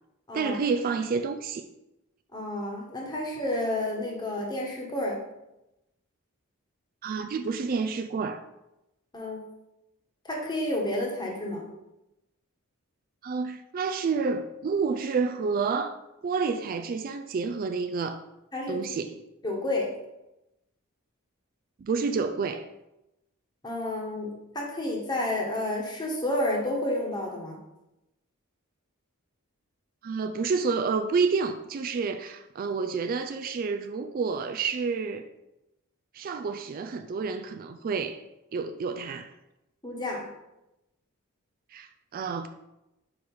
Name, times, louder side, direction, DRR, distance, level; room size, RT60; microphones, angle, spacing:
voice 1, 0.3-1.6 7.0-8.5 13.2-15.9 16.2-18.2 18.7-19.2 21.8-22.7 30.0-35.2 36.1-38.2 38.5-39.3 41.7-42.5, right 5 dB, 40° right, 0.3 m, -29 dB
voice 2, 2.3-5.2 9.1-9.4 10.2-11.7 18.5-18.8 19.4-19.9 23.6-27.6 39.8-40.3, left 1 dB, 20° left, 1.2 m, -30 dB
4.8 x 4.7 x 5.3 m
head